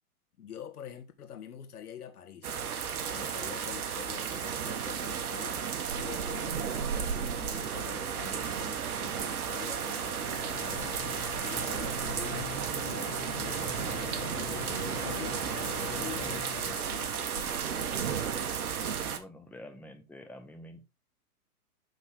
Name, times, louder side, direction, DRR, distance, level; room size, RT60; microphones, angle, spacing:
voice 1, 0.4-2.5 3.1-5.6 5.9-11.0 11.4-14.2 14.7-17.8, left 9 dB, 75° left, 1.7 m, -46 dB
sound 1, 2.4-19.2, right 7 dB, 70° right, 1.4 m, -33 dB
sound 2, 10.3-16.8, left 12 dB, 25° left, 0.8 m, -43 dB
voice 2, 19.1-20.9, left 1 dB, 5° left, 1.2 m, -48 dB
12.0 x 4.1 x 3.5 m
hypercardioid pair, 125°, 46 cm